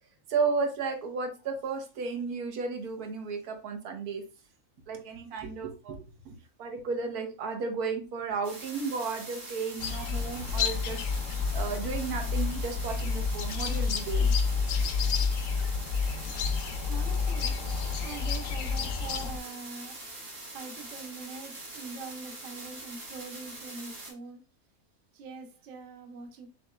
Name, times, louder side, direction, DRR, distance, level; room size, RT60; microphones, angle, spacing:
voice 1, 0.3-4.2 4.9-11.1 11.5-14.3, right 4 dB, 90° right, 1.4 m, -33 dB
sound 1, 8.4-24.1, right 2 dB, 65° right, 2.5 m, -44 dB
sound 2, 9.8-19.4, left 5 dB, 70° left, 0.9 m, -29 dB
voice 2, 16.8-17.5 18.0-20.0 20.5-24.4 25.1-26.5, right 4 dB, 45° right, 0.8 m, -43 dB
6.7 x 2.8 x 2.3 m
omnidirectional pair, 1.6 m